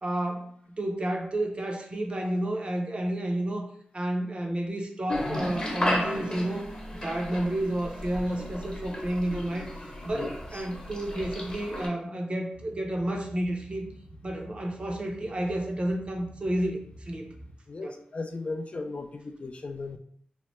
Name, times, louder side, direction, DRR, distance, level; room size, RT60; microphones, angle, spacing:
voice 1, 0.0-3.7 3.9-6.7 7.0-9.7 10.0-13.9 14.2-16.8 17.0-17.3 17.8-17.9, right 1 dB, 40° right, 2 dB, 0.6 m, -30 dB
sound 1, 5.1-11.9, left 1 dB, 30° left, 0.8 m, -34 dB
Bass guitar, 5.4-9.7 10.0-11.6, right 2 dB, 80° right, 0.6 m, -48 dB
voice 2, 10.1-10.7 17.7-20.0, left 3 dB, 45° left, 5 dB, 0.3 m, -37 dB
Boat Water vehicle, 12.5-17.5, equal, 90° left, 0.7 m, -48 dB
3.0 x 2.1 x 3.0 m, 0.63 s
wide cardioid pair, 75°, 3 cm